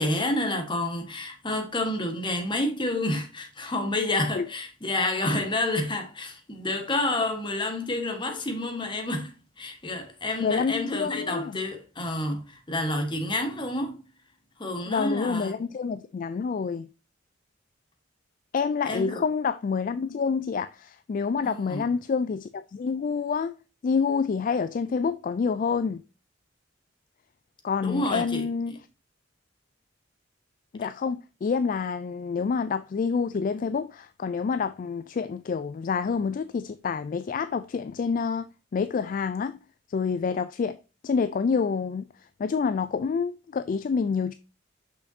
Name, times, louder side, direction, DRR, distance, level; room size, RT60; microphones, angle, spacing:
voice 1, 0.0-14.0 14.6-15.5 18.8-19.2 21.4-21.8 27.8-28.8, left 1 dB, 25° left, 1.4 m, -29 dB
voice 2, 10.4-11.6 14.9-16.9 18.5-23.5 23.8-26.0 27.6-28.8 30.7-38.5 38.7-39.6 39.9-40.8 41.0-42.1 42.4-44.3, left 5 dB, 45° left, 0.3 m, -27 dB
6.5 x 5.6 x 2.7 m
head